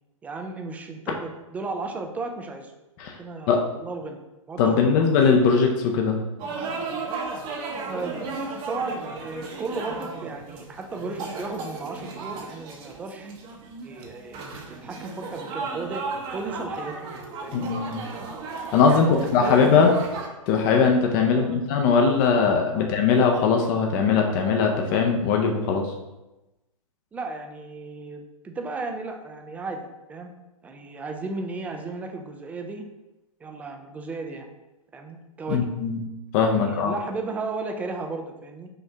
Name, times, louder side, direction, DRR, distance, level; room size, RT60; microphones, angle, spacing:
voice 1, 0.2-2.7 3.2-4.2 4.5-4.9 7.8-13.3 13.8-16.0 16.3-17.0 17.4-17.7 18.9-19.9 21.2-21.6 22.7-22.9 27.1-30.3 30.6-32.9 33.4-34.5 34.9-35.7 36.5-38.7, right 3 dB, 10° right, 4 dB, 0.3 m, -35 dB
voice 2, 4.6-6.2 17.5-18.0 18.7-19.9 20.5-25.9 35.5-36.0 36.3-36.9, left 5 dB, 35° left, 2 dB, 0.6 m, -20 dB
sound 1, 6.4-20.3, right 4 dB, 25° right, 0.7 m, -35 dB
5.6 x 2.6 x 3.4 m, 1.0 s
figure-of-eight pair, 120°, 18 cm